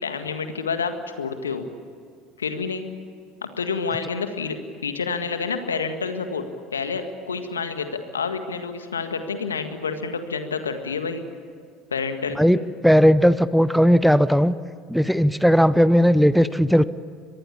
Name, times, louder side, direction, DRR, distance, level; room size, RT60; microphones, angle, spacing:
voice 1, 0.0-1.6 2.4-2.8 3.4-4.6 4.8-7.9 8.1-11.2 11.9-12.4, left 5 dB, 85° left, 8 dB, 1.8 m, -28 dB
voice 2, 12.8-14.5 14.9-16.8, equal, ahead, 16 dB, 0.9 m, -17 dB
24.5 x 20.5 x 8.6 m, 2.2 s
figure-of-eight pair, 70°, 0 cm